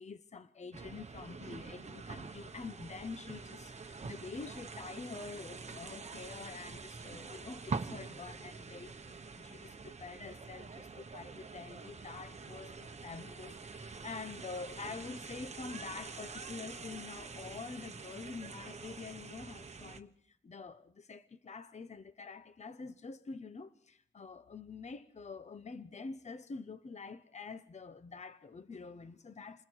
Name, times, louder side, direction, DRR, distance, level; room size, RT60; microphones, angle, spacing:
voice 1, 0.0-29.6, left 4 dB, 35° left, 0.9 m, -47 dB
sound 1, 0.7-20.0, right 4 dB, 35° right, 1.2 m, -46 dB
28.5 x 20.0 x 4.6 m
wide cardioid pair, 105°, 20 cm